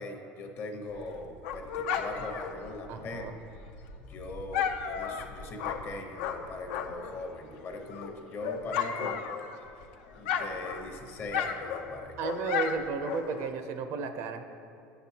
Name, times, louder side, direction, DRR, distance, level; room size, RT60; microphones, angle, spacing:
voice 1, 0.0-3.3 4.1-9.9 10.2-12.2, left 2 dB, 45° left, 4 dB, 0.8 m, -41 dB
Dog, 0.9-7.2 7.6-9.8 10.1-13.6, left 7 dB, 85° left, 0.4 m, -35 dB
voice 2, 2.9-3.4 8.8-8.9 12.2-14.4, right 5 dB, 65° right, 8 dB, 0.5 m, -34 dB
9.1 x 6.0 x 2.8 m, 2.6 s
supercardioid pair, 110°, 6 cm